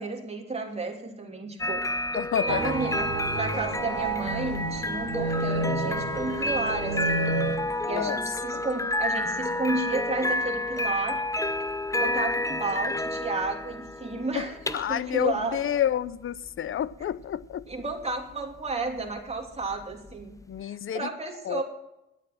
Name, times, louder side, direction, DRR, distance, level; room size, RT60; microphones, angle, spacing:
voice 1, 0.0-1.8 2.4-3.0 3.3-7.3 7.8-11.2 11.9-15.6 17.7-21.6, right 3 dB, 20° right, 3.1 m, -32 dB
sound 1, 1.6-20.6, left 1 dB, 10° left, 0.6 m, -31 dB
voice 2, 2.1-2.7 7.9-8.2 8.5-8.6 14.4-14.5 14.7-17.7 20.5-21.1 21.5-21.6, left 10 dB, 45° left, 0.6 m, -29 dB
sound 2, 2.5-7.6, right 3 dB, 55° right, 2.3 m, -31 dB
11.0 x 9.0 x 7.5 m
cardioid pair, 90°, 30 cm